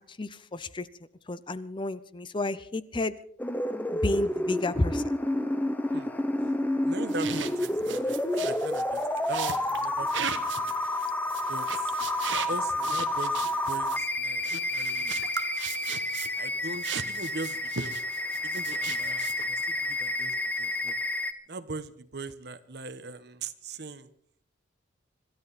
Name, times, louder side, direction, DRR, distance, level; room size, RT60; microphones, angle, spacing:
voice 1, 0.2-0.9 1.3-3.2 3.9-5.0, left 2 dB, 25° left, 14 dB, 0.6 m, -31 dB
sound 1, 3.4-21.3, left 1 dB, 10° left, 1.0 m, -30 dB
voice 2, 6.8-9.0 9.3-10.8 11.5-11.9 12.5-15.2 16.4-18.0 18.4-20.9 21.5-24.1, right 3 dB, 60° right, 13 dB, 1.1 m, -40 dB
sound 2, 7.1-16.5 16.8-19.6, right 7 dB, 85° right, 1.2 m, -38 dB
26.0 x 13.0 x 4.2 m, 0.63 s
head